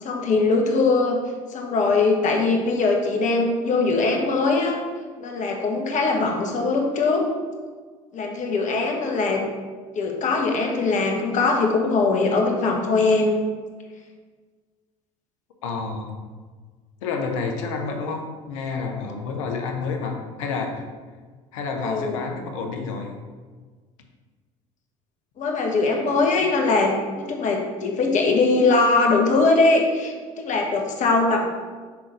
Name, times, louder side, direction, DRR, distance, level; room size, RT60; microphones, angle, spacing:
voice 1, 0.0-1.2 1.5-4.8 5.2-7.2 8.1-9.5 9.9-13.4 21.8-22.2 25.4-31.5, left 3 dB, 50° left, 1 dB, 1.4 m, -21 dB
voice 2, 15.6-16.2 17.0-20.8 21.5-23.1, left 4 dB, 75° left, 3 dB, 1.0 m, -29 dB
5.9 x 3.8 x 5.1 m, 1.5 s
hypercardioid pair, 65°, 17 cm